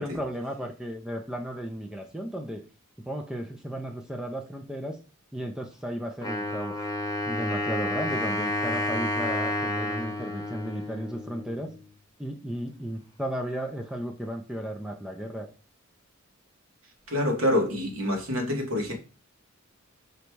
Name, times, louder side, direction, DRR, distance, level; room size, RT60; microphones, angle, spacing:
voice 1, 0.0-2.6 3.1-5.0 5.3-6.8 7.3-11.7 12.2-15.5, equal, 5° right, 0.4 m, -34 dB
Wind instrument woodwind instrument, 6.2-11.9, left 1 dB, 20° left, 0.8 m, -30 dB
voice 2, 17.1-18.9, left 1 dB, 70° right, 1.3 m, -26 dB
3.9 x 2.2 x 4.5 m
head